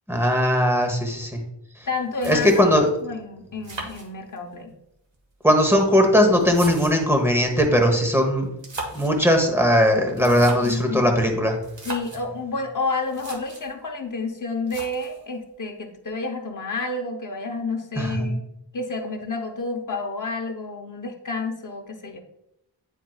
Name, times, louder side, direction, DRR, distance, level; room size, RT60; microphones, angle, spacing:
voice 1, 0.1-1.4 2.3-2.9 5.4-8.5 8.9-11.5 18.0-18.3, equal, 5° right, 3 dB, 1.1 m, -19 dB
sound 1, 1.8-1.9 2.2-2.9 3.6-4.6 5.5-7.2 8.5-9.2 10.1-10.9 11.6-12.3 12.8-12.9 13.1-13.7 14.7-15.3, right 2 dB, 65° right, 1.3 m, -37 dB
voice 2, 1.9-2.5 3.0-4.7 10.2-11.1 11.8-18.4 18.7-22.2, left 3 dB, 40° left, 3 dB, 0.9 m, -30 dB
9.0 x 4.5 x 2.3 m, 0.82 s
wide cardioid pair, 105°, 48 cm